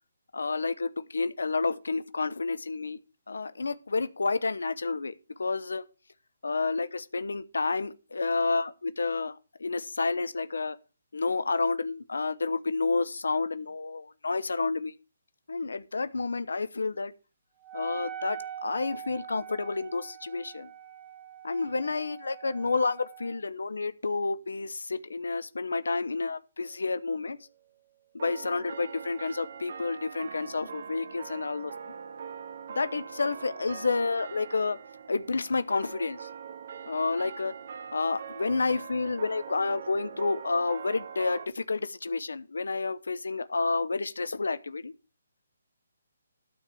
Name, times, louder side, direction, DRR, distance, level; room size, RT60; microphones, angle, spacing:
voice 1, 0.3-3.0 3.3-5.1 5.4-5.8 6.4-10.8 11.1-14.9 15.5-17.1 17.7-20.7 21.4-27.4 28.1-31.7 32.8-34.8 35.1-36.3 36.9-37.5 37.9-44.9, left 3 dB, 85° left, 0.9 m, -30 dB
Wind instrument woodwind instrument, 17.6-23.4, right 10 dB, 20° right, 1.1 m, -43 dB
sound 1, 26.6-27.6 28.2-41.5, right 7 dB, 55° right, 0.9 m, -43 dB
12.5 x 4.7 x 6.9 m
hypercardioid pair, 155°, 0 cm